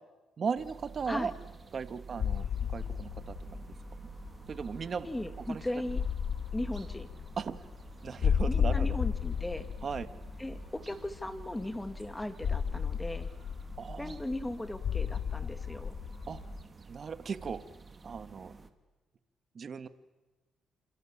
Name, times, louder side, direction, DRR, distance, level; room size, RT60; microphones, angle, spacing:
voice 1, 0.4-1.3 1.7-2.5 2.7-3.6 4.5-5.1 5.5-5.6 7.4-7.6 8.0-9.0 9.8-10.1 13.8-14.2 16.3-16.4 16.9-17.6 18.0-18.5 19.6-19.9, right 6 dB, 45° right, 12 dB, 1.8 m, -37 dB
sound 1, 0.5-18.7, right 4 dB, 30° right, 2.4 m, -50 dB
sound 2, 2.2-16.6, left 7 dB, 60° left, 1.2 m, -34 dB
voice 2, 5.0-6.0 6.5-7.1 8.5-9.7 10.4-13.3 14.0-15.9, left 1 dB, 10° left, 10 dB, 2.2 m, -37 dB
29.0 x 28.0 x 7.4 m, 1.1 s
cardioid pair, 90°, 0 cm